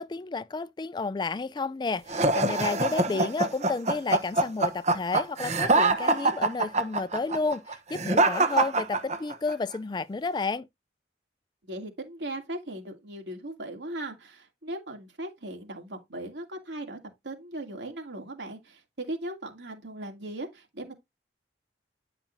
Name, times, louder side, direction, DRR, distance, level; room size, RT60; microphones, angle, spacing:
voice 1, 0.0-10.7, left 3 dB, 25° left, 0.3 m, -31 dB
sound 1, 2.1-9.5, right 2 dB, 40° right, 0.9 m, -24 dB
voice 2, 2.7-3.2 11.6-17.0 17.2-21.0, right 1 dB, 80° right, 2.6 m, -38 dB
10.5 x 5.9 x 2.6 m
head